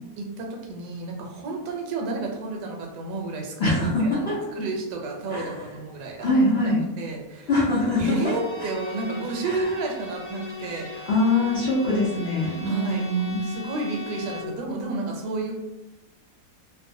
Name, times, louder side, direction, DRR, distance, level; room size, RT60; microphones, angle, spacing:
voice 1, 0.2-7.5 8.0-11.1 12.7-13.1 13.4-15.5, right 3 dB, 80° right, 1 dB, 1.2 m, -31 dB
voice 2, 3.6-4.4 5.3-5.5 6.2-6.8 7.5-8.3 9.4-9.6 11.1-13.4, left 1 dB, 80° left, -7 dB, 0.5 m, -23 dB
Bowed string instrument, 7.9-14.6, left 3 dB, 60° left, 1.0 m, -39 dB
2.8 x 2.1 x 2.6 m, 1.0 s
omnidirectional pair, 1.9 m